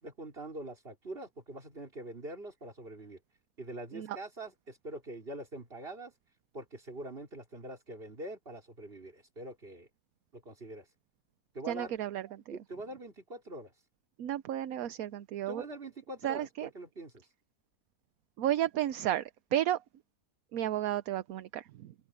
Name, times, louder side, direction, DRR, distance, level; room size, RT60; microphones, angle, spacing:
voice 1, 0.0-3.2 3.6-6.1 6.5-9.9 10.3-10.9 11.5-11.9 12.5-13.7 15.5-17.2, right 2 dB, 40° right, 4.1 m, -44 dB
voice 2, 11.7-12.6 14.2-15.6 16.2-16.7 18.4-19.8 20.5-21.9, right 12 dB, 75° right, 1.1 m, -33 dB
open air
omnidirectional pair, 1.6 m